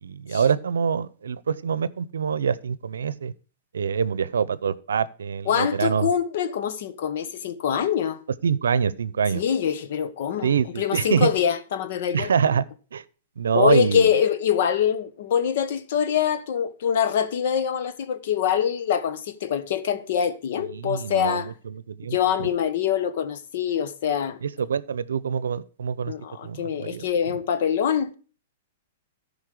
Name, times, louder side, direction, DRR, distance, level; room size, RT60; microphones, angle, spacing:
voice 1, 0.0-3.3 3.7-6.1 8.4-9.4 10.4-11.3 12.1-12.6 12.9-13.0 13.4-14.1 20.7-22.5 24.4-26.1 26.4-27.0, right 7 dB, 90° right, 0.6 m, -25 dB
voice 2, 5.5-8.2 9.3-12.3 13.5-21.5 22.1-24.4 26.1-28.1, left 8 dB, 60° left, 1.1 m, -24 dB
13.5 x 5.2 x 4.9 m
hypercardioid pair, 135°, 0 cm